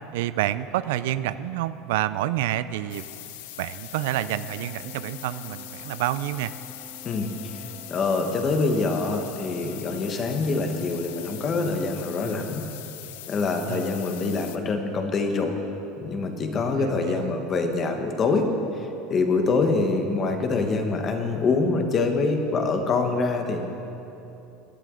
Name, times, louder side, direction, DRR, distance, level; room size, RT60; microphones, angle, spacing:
voice 1, 0.1-3.1 3.6-6.5 13.7-13.9 16.8-17.3, right 13 dB, 85° right, 15 dB, 0.4 m, -28 dB
sound 1, 2.9-14.6, left 14 dB, 80° left, 0.6 m, -41 dB
sound 2, 4.5-11.3, right 2 dB, 10° right, 2.4 m, -47 dB
voice 2, 7.0-7.5 7.9-12.6 13.3-15.6 16.0-18.5 18.8-23.6, left 3 dB, 25° left, 5 dB, 1.1 m, -25 dB
16.0 x 11.0 x 3.8 m, 2.9 s
cardioid pair, 160°, 0 cm